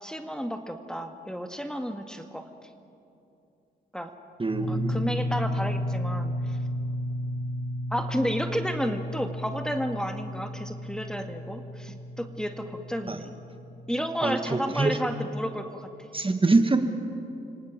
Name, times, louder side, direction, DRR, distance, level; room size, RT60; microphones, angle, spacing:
voice 1, 0.0-2.5 3.9-4.1 4.6-6.6 7.9-13.4 13.9-15.9, equal, 5° left, 6 dB, 2.1 m, -32 dB
voice 2, 4.4-5.0 13.1-13.2 14.2-15.0 16.1-16.8, right 3 dB, 25° right, 7 dB, 1.9 m, -24 dB
sound 1, 4.5-14.0, equal, 30° left, 5.2 m, -33 dB
29.0 x 18.0 x 7.6 m, 2.7 s
supercardioid pair, 55°, 20 cm